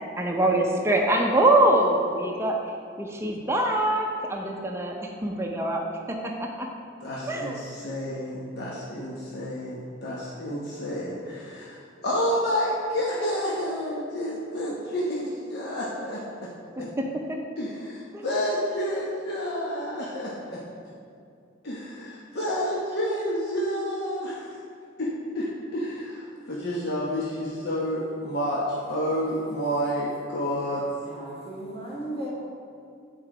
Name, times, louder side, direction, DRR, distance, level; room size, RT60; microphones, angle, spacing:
voice 1, 0.2-2.6 3.0-5.0 5.2-6.7 7.3-7.6 16.8-17.4 18.1-18.2, right 1 dB, 15° right, 1 dB, 0.6 m, -24 dB
voice 2, 7.0-16.2 16.8-16.9 17.6-20.6 21.6-24.5 25.0-25.1 25.3-28.6 28.9-30.8, equal, 55° left, -6 dB, 1.0 m, -29 dB
voice 3, 31.0-32.3, right 1 dB, 30° left, -7 dB, 1.9 m, -36 dB
8.6 x 4.5 x 4.9 m, 2.4 s
head